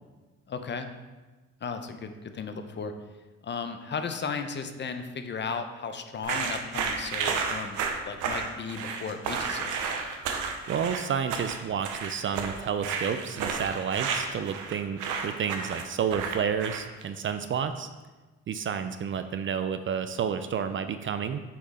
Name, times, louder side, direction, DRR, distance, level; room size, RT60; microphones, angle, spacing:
voice 1, 0.5-0.9 1.6-2.9 3.4-9.8, left 5 dB, 35° left, 7 dB, 0.6 m, -35 dB
sound 1, 6.2-17.0, right 5 dB, 90° right, 0.7 m, -32 dB
voice 2, 10.7-17.9 18.5-21.4, right 7 dB, 45° right, 10 dB, 0.4 m, -30 dB
6.3 x 3.8 x 4.1 m, 1.2 s
cardioid pair, 90°, 30 cm